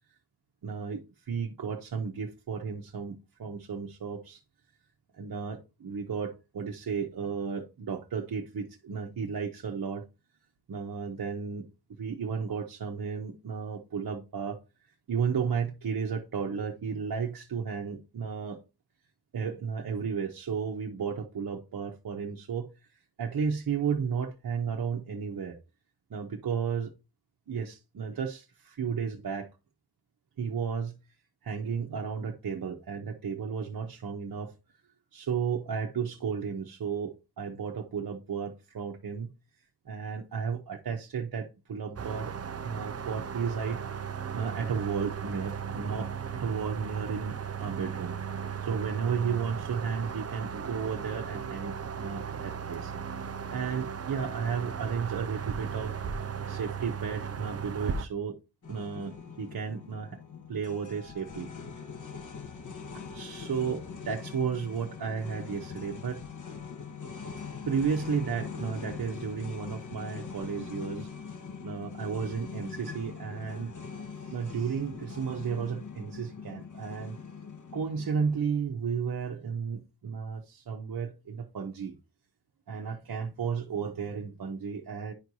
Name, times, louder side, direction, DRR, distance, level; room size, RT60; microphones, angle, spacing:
voice 1, 0.6-4.4 5.2-10.0 10.7-11.7 12.0-14.6 15.1-18.6 19.3-22.7 23.2-25.6 26.1-26.9 27.5-29.5 30.4-30.9 31.4-34.5 35.1-39.3 39.8-42.3 42.6-56.0 56.5-58.4 58.7-60.2 60.5-61.5 62.9-66.2 67.7-71.1 71.6-73.7 74.2-77.2 77.7-82.0 82.7-85.1, right 6 dB, 65° right, 1.1 m, -33 dB
sound 1, 42.0-58.1, right 7 dB, 40° right, 0.7 m, -36 dB
sound 2, 58.6-78.4, left 6 dB, 50° left, 1.5 m, -42 dB
10.5 x 4.5 x 2.7 m
cardioid pair, 65°, 38 cm